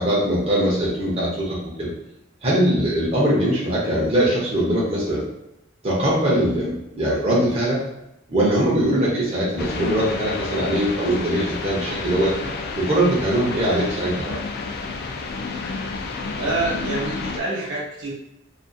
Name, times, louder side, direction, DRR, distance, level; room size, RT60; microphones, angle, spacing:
voice 1, 0.0-1.9 2.4-5.2 5.8-7.8 8.3-12.3 12.8-14.3, right 1 dB, 30° right, -6 dB, 0.6 m, -21 dB
sound 1, 9.6-17.4, left 3 dB, 50° left, 0.3 m, -30 dB
voice 2, 16.4-18.1, right 2 dB, 70° right, -5 dB, 1.0 m, -27 dB
2.5 x 2.3 x 2.5 m, 0.86 s
head